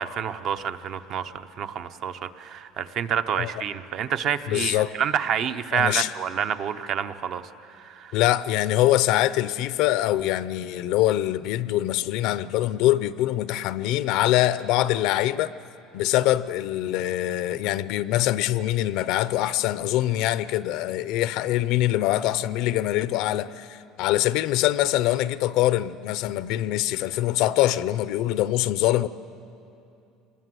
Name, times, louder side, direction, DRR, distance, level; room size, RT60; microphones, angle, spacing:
voice 1, 0.0-7.4 7.7-8.1, right 8 dB, 40° right, 0.7 m, -28 dB
voice 2, 4.5-4.9 5.7-6.1 8.1-15.5 15.9-29.1, left 14 dB, 60° left, 0.6 m, -24 dB
26.0 x 21.0 x 7.7 m
cardioid pair, 170°, 0 cm